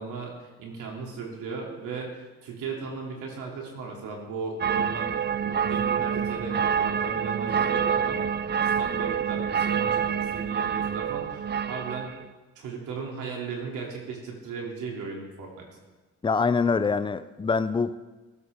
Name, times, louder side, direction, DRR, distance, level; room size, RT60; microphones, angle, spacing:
voice 1, 0.0-12.2 12.5-15.7, right 4 dB, 85° right, -1 dB, 3.0 m, -36 dB
sound 1, 4.6-12.2, right 7 dB, 35° right, 0.6 m, -27 dB
voice 2, 16.2-17.9, left 5 dB, 15° left, 13 dB, 0.6 m, -24 dB
15.5 x 13.0 x 3.7 m, 1.2 s
cardioid pair, 90°, 30 cm